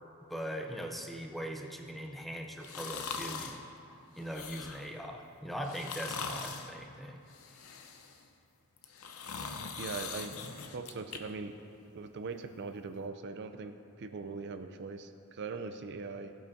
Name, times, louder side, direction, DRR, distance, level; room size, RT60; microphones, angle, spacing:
voice 1, 0.3-3.6 4.1-7.2, equal, ahead, 2 dB, 0.6 m, -40 dB
sound 1, 2.6-3.6 4.2-4.9 5.6-6.7 7.3-8.2 8.8-11.2 11.6-11.7, left 5 dB, 70° left, 0.7 m, -41 dB
voice 2, 9.8-10.3 10.7-11.5 11.9-16.3, right 4 dB, 50° right, 8 dB, 0.4 m, -41 dB
16.5 x 8.6 x 2.7 m, 2.6 s
head